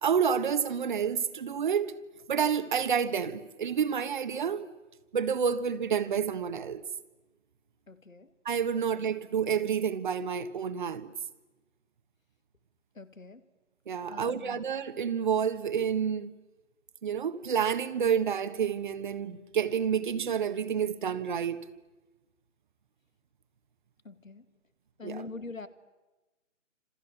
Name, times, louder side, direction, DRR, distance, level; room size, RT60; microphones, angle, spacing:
voice 1, 0.0-1.9 2.3-4.7 5.1-6.8 8.4-11.1 13.9-16.3 17.0-21.6 25.0-25.2, right 7 dB, 40° right, 1.4 m, -29 dB
voice 2, 7.9-8.3 8.7-8.8 13.0-13.4 14.1-14.6 24.0-24.5 25.0-25.7, left 3 dB, 85° left, 2.2 m, -44 dB
29.0 x 27.0 x 7.2 m
figure-of-eight pair, 150°, 39 cm